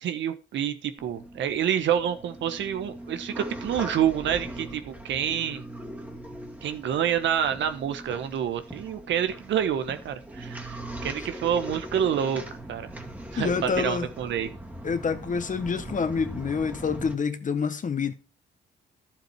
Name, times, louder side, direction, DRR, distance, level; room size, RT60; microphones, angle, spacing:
voice 1, 0.0-5.6 6.6-12.4 12.7-12.9 13.3-14.5, right 9 dB, 80° right, 1.3 m, -28 dB
sound 1, 1.0-17.1, right 1 dB, 10° right, 2.2 m, -40 dB
voice 2, 13.3-14.1 14.8-18.1, left 5 dB, 45° left, 1.5 m, -27 dB
11.5 x 7.6 x 4.7 m
cardioid pair, 85°, 19 cm